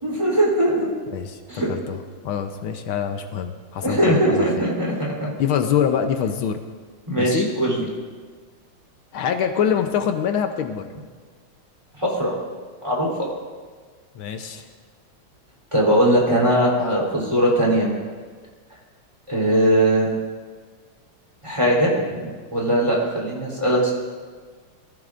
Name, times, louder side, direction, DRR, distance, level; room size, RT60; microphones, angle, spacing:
voice 1, 0.0-0.9 1.5-1.7 3.8-5.3 7.1-7.8 12.0-12.3 12.8-13.3 15.7-17.9 19.3-20.1 21.4-22.2 22.5-23.9, right 1 dB, 15° right, -5 dB, 3.5 m, -20 dB
voice 2, 1.1-2.0 2.2-4.5 5.4-6.6 7.2-7.5 9.1-10.9 14.1-14.6, left 8 dB, 80° left, 6 dB, 1.6 m, -24 dB
22.5 x 14.5 x 2.6 m, 1.5 s
omnidirectional pair, 2.3 m